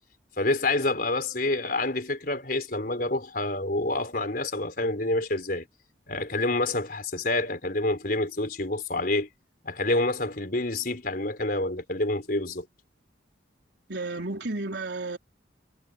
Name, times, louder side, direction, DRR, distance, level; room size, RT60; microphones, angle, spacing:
voice 1, 0.4-5.6 6.1-9.3 9.6-12.7, left 2 dB, 50° left, 4.8 m, -27 dB
voice 2, 13.9-15.2, right 2 dB, 65° right, 4.1 m, -32 dB
head